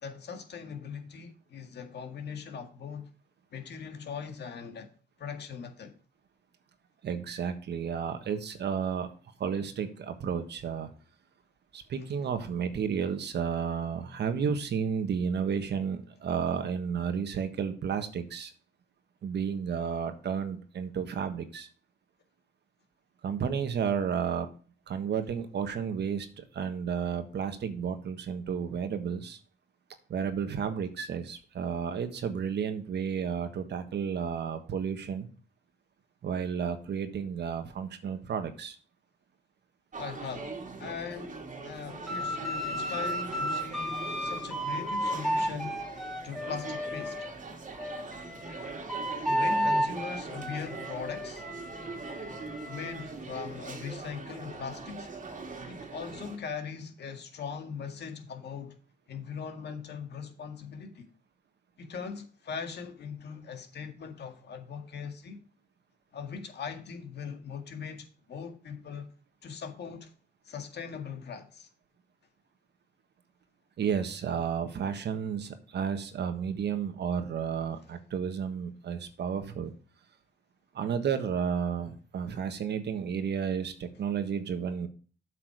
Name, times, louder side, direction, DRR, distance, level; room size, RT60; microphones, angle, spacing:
voice 1, 0.0-3.1 3.5-4.9 5.2-5.9 40.0-45.8 46.2-47.2 49.3-51.4 52.7-55.1 55.6-58.8 59.1-61.1 61.8-65.4 66.1-69.1 69.4-70.1 70.4-71.7, left 6 dB, 60° left, 1.9 m, -40 dB
voice 2, 7.0-9.1 9.4-10.9 11.7-18.5 19.2-21.7 23.2-24.5 24.9-29.4 30.1-35.3 36.2-38.8 73.8-79.7 80.7-84.9, right 7 dB, 60° right, 1.4 m, -32 dB
sound 1, 39.9-56.4, right 4 dB, 40° right, 2.0 m, -42 dB
sound 2, 42.1-47.3 47.8-53.1, equal, ahead, 2.0 m, -33 dB
8.0 x 6.0 x 4.8 m
cardioid pair, 90°, 20 cm